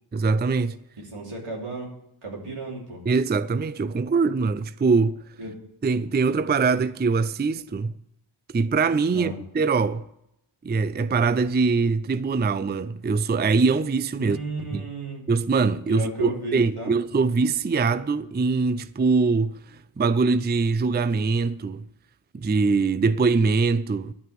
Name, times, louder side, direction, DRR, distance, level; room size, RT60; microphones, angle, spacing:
voice 1, 0.1-0.8 3.1-5.2 5.8-7.9 8.5-10.1 10.6-14.4 14.7-14.8 15.3-19.6 20.0-21.8 22.3-24.1, right 4 dB, 20° right, 0.4 m, -23 dB
voice 2, 1.0-1.9 2.2-3.0 5.4-5.5 9.1-9.4 14.1-15.3 15.9-16.9, right 2 dB, 85° right, 3.2 m, -33 dB
11.5 x 5.8 x 7.4 m
wide cardioid pair, 55°, 50 cm